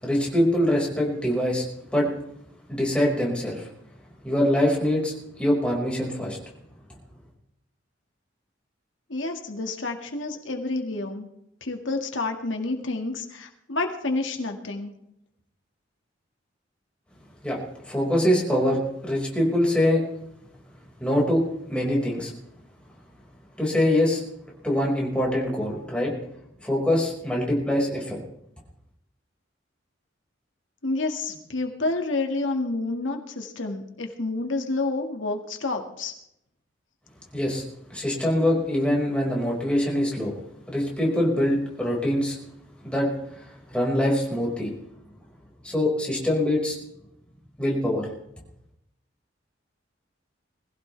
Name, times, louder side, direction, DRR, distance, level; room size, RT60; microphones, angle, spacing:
voice 1, 0.0-1.6 1.9-2.1 2.7-3.7 4.2-6.4 17.4-17.6 17.9-20.0 21.0-21.4 21.7-22.3 23.6-24.2 24.6-26.1 26.6-28.2 37.3-37.6 37.9-40.4 40.7-42.4 42.8-43.1 43.4-43.5 43.7-44.7 45.6-46.8 47.6-48.1, left 1 dB, 5° left, -3 dB, 5.2 m, -24 dB
voice 2, 9.1-11.3 11.6-14.9 30.8-36.1, left 2 dB, 85° left, 3 dB, 2.0 m, -29 dB
22.0 x 16.0 x 3.4 m, 0.78 s
head